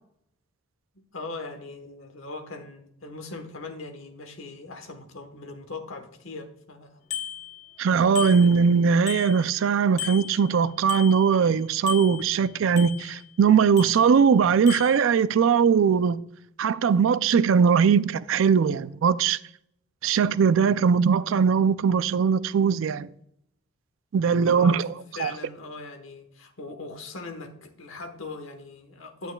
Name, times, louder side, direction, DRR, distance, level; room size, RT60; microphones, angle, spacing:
voice 1, 0.9-7.0 8.2-8.5 24.4-24.9 25.2-29.3, left 3 dB, 75° left, 1.2 m, -40 dB
Bicycle bell, 7.1-7.8 8.2-9.7 10.0-11.5 11.9-13.3 13.8-14.4 14.7-15.0, left 10 dB, 40° left, 1.0 m, -37 dB
voice 2, 7.8-16.2 16.6-19.4 20.0-23.1 24.1-24.9 25.2-25.3, right 6 dB, 70° right, 0.4 m, -20 dB
8.9 x 8.9 x 2.3 m
head